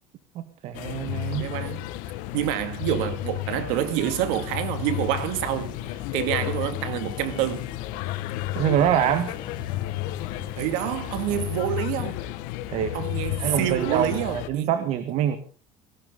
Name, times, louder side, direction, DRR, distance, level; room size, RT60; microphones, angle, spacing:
voice 1, 0.4-1.5 8.6-9.3 12.7-13.0 13.4-15.4, right 10 dB, 55° right, 1.7 m, -25 dB
sound 1, 0.7-14.5, left 15 dB, 70° left, 1.6 m, -32 dB
voice 2, 1.3-1.9 2.3-7.7 10.6-12.2 12.9-14.7, right 12 dB, 80° right, 2.4 m, -27 dB
sound 2, 4.4-11.8, left 8 dB, 30° left, 2.9 m, -43 dB
19.5 x 15.5 x 3.9 m
cardioid pair, 140°, 14 cm